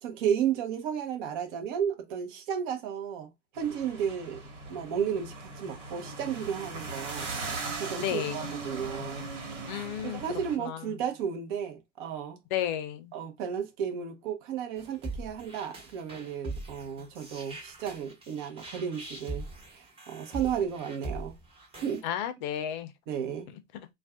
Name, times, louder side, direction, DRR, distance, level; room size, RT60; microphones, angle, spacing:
voice 1, 0.0-3.3 3.5-4.4 4.7-7.3 7.8-9.2 9.7-9.9 10.1-12.4 13.1-19.4 19.7-21.4 21.8-22.0 23.1-23.5, right 8 dB, 45° right, 0.8 m, -33 dB
sound 1, 3.5-10.5, right 3 dB, 80° right, 1.3 m, -39 dB
voice 2, 8.0-8.5 9.7-10.2 10.6-10.9 12.5-13.1 22.0-22.9 23.5-23.9, left 10 dB, 40° left, 0.6 m, -33 dB
sound 2, 14.8-22.0, right 2 dB, 15° right, 1.1 m, -41 dB
2.5 x 2.3 x 3.4 m
hypercardioid pair, 115°, 36 cm